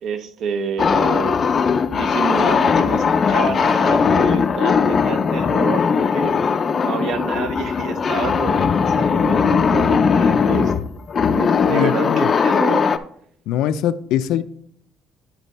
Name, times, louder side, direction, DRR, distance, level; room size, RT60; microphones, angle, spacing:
voice 1, 0.0-1.4 1.9-6.4 6.8-10.7 11.3-12.9, right 6 dB, 55° right, 9 dB, 0.8 m, -28 dB
sound 1, 0.8-13.0, left 6 dB, 30° left, 0.4 m, -18 dB
voice 2, 11.6-12.3 13.5-14.4, left 11 dB, 90° left, 12 dB, 0.5 m, -22 dB
10.5 x 4.4 x 4.1 m, 0.66 s
cardioid pair, 160°, 0 cm